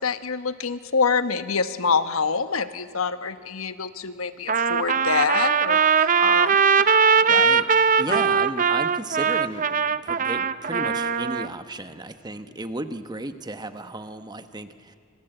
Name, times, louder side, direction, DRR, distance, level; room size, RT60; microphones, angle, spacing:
voice 1, 0.0-6.6 7.3-7.4 8.1-8.3, left 5 dB, 80° left, 11 dB, 1.1 m, -26 dB
Trumpet, 4.5-11.5, right 6 dB, 40° right, 0.6 m, -20 dB
voice 2, 7.3-7.7 8.0-15.0, right 2 dB, 20° right, 9 dB, 1.1 m, -34 dB
27.5 x 25.5 x 7.9 m, 2.3 s
head